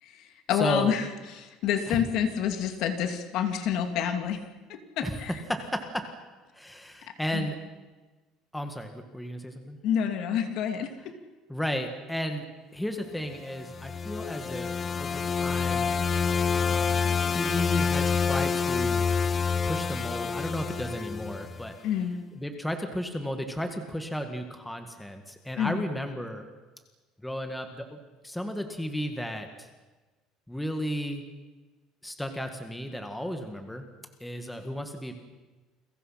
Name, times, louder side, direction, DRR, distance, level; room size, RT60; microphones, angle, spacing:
voice 1, 0.0-4.4 4.7-5.4 7.3-7.5 9.8-11.1 21.8-22.2 25.6-25.8, left 8 dB, 55° left, 7 dB, 2.7 m, -28 dB
voice 2, 0.6-0.9 1.9-2.0 5.0-5.2 5.5-6.1 6.5-7.6 8.5-9.8 11.5-12.5 12.7-14.7 15.0-15.9 16.5-19.0 19.6-21.8 22.4-26.5 27.2-28.0 28.2-29.7 30.5-31.2 32.0-33.8 34.2-35.1, equal, 5° left, 5 dB, 1.9 m, -34 dB
sound 1, 13.5-21.7, left 5 dB, 25° left, 0.8 m, -27 dB
30.0 x 22.5 x 5.9 m, 1.2 s
cardioid pair, 165°, 0 cm